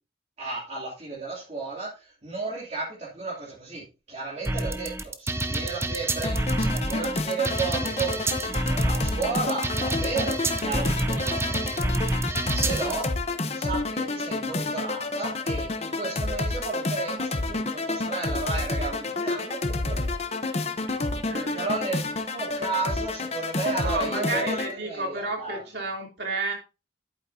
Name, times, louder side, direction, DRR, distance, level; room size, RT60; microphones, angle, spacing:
voice 1, 0.4-13.1 13.5-20.2 21.3-24.6 24.8-25.6, right 4 dB, 35° right, -7 dB, 2.8 m, -33 dB
sound 1, 4.4-13.0, right 2 dB, 15° right, 0.5 m, -28 dB
sound 2, 6.2-24.7, left 2 dB, 35° left, 0.9 m, -29 dB
voice 2, 20.9-21.6 23.7-26.5, right 2 dB, 60° right, 1 dB, 3.1 m, -32 dB
11.0 x 8.8 x 2.7 m, 0.30 s
head